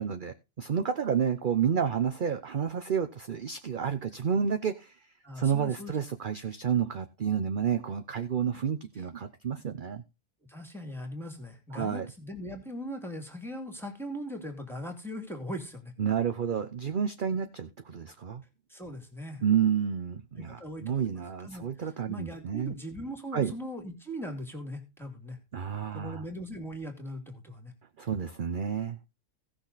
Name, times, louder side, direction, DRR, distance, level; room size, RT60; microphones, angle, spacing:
voice 1, 0.0-4.9 5.4-10.0 11.7-12.1 16.0-18.4 19.4-22.7 23.3-23.5 25.5-26.2 28.0-29.1, right 7 dB, 45° right, 0.9 m, -30 dB
voice 2, 5.2-6.0 10.5-15.9 18.7-19.4 20.4-21.1 21.4-25.4 25.9-27.7, equal, ahead, 2.4 m, -40 dB
16.5 x 6.4 x 4.1 m
omnidirectional pair, 1.3 m